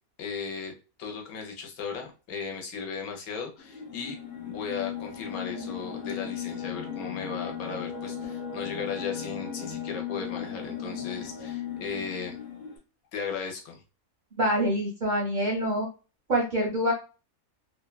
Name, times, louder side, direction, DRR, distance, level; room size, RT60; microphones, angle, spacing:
voice 1, 0.2-0.7 1.0-4.2 4.4-12.4 13.1-13.8, left 6 dB, 85° left, 2 dB, 1.2 m, -36 dB
sound 1, 3.6-12.8, left 8 dB, 55° left, 0.5 m, -36 dB
voice 2, 14.4-15.9 16.3-16.9, equal, 50° right, 0 dB, 0.6 m, -25 dB
2.8 x 2.2 x 2.2 m, 0.33 s
omnidirectional pair, 1.5 m